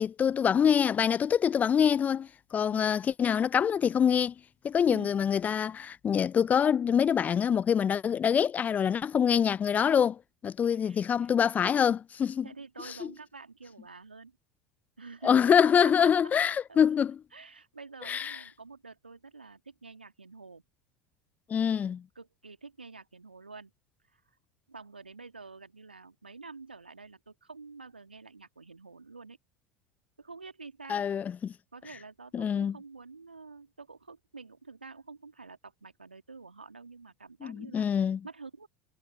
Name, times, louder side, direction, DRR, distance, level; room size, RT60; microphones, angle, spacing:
voice 1, 0.0-4.3 4.6-10.2 10.4-12.4 15.2-17.2 18.1-18.4 21.5-22.0 30.9-31.5 32.3-32.8 37.4-38.2, left 8 dB, 30° left, 0.6 m, -25 dB
voice 2, 10.6-11.3 12.4-14.4 15.0-16.1 16.7-16.8 17.3-20.6 22.1-23.7 24.1-24.4 24.7-29.4 30.2-31.1 31.7-38.7, right 4 dB, 90° right, 2.6 m, -48 dB
figure-of-eight pair, 75°, 5 cm